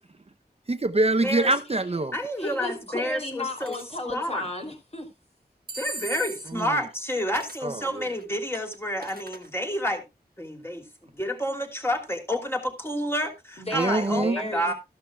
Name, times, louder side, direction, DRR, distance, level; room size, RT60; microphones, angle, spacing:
voice 1, 0.7-2.1 6.5-6.8 7.6-8.1 13.7-14.4, right 2 dB, 35° right, 0.7 m, -25 dB
voice 2, 1.2-1.5 2.1-3.8 4.1-4.4 5.8-10.0 10.4-10.8 11.2-14.7, equal, 15° left, 2.9 m, -29 dB
voice 3, 2.4-5.1 13.6-14.7, left 1 dB, 40° left, 3.2 m, -33 dB
sound 1, 3.6-3.8 5.7-6.6 7.3-7.7 8.2-9.5, right 3 dB, 65° right, 1.3 m, -38 dB
13.5 x 12.5 x 2.3 m
wide cardioid pair, 60°, 17 cm